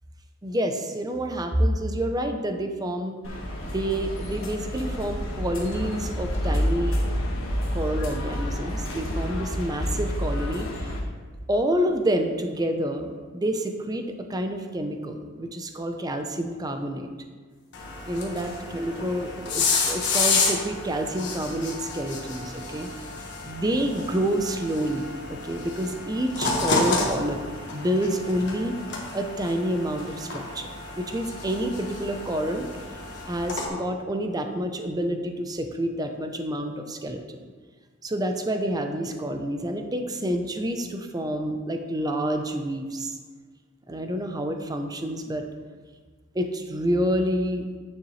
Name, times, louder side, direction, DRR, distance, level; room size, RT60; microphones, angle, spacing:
voice 1, 0.4-3.2 3.6-7.0 7.7-10.9 11.5-17.1 18.1-22.9 23.4-27.4 27.7-28.8 29.1-30.7 31.0-32.7 33.3-37.5 38.0-43.1 43.9-45.5 46.3-47.6, right 1 dB, 20° right, 5 dB, 0.6 m, -28 dB
sound 1, 3.2-11.0, equal, 75° left, 1.5 m, -29 dB
sound 2, 17.7-33.7, left 4 dB, 60° left, 1.5 m, -30 dB
9.6 x 6.6 x 3.2 m, 1.5 s
head